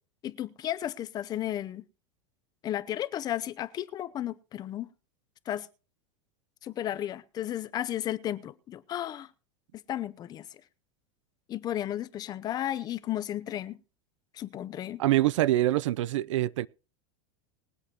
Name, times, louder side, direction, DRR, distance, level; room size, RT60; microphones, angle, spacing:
voice 1, 0.2-1.8 2.6-4.9 5.5-5.7 6.6-9.3 9.9-10.5 11.5-13.8 14.3-15.0, left 12 dB, 25° left, 0.7 m, -33 dB
voice 2, 15.0-16.7, right 15 dB, 90° right, 0.6 m, -25 dB
21.0 x 8.1 x 3.0 m
supercardioid pair, 150°, 16 cm